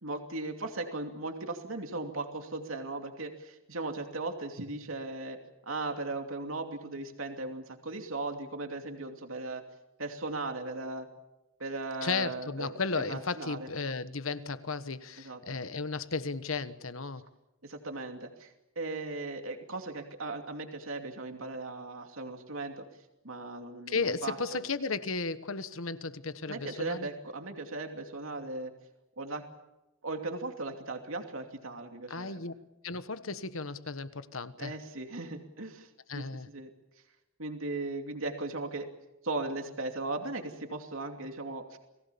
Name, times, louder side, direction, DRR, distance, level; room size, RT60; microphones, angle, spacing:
voice 1, 0.0-5.4 5.7-9.6 10.0-11.1 11.6-12.7 13.1-13.7 15.2-15.6 17.6-22.8 23.2-24.6 26.5-28.7 29.2-29.4 30.0-32.4 34.6-35.9 36.1-36.7 37.4-38.9 39.2-41.8, right 2 dB, 75° right, 4 dB, 2.7 m, -37 dB
voice 2, 12.0-17.2 23.9-27.1 32.1-32.5 32.8-34.7 36.1-36.5, left 4 dB, 75° left, 12 dB, 1.3 m, -34 dB
29.5 x 20.0 x 7.1 m, 0.96 s
head